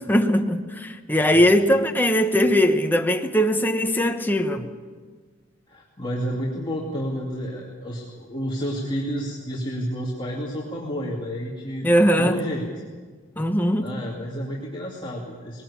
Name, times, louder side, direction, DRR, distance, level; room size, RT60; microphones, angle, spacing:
voice 1, 0.0-4.7 11.8-12.4 13.4-14.0, equal, 10° left, 1.2 m, -20 dB
voice 2, 5.7-11.9 12.2-12.7 13.8-15.6, equal, 25° left, 2.5 m, -30 dB
20.0 x 18.0 x 8.6 m
head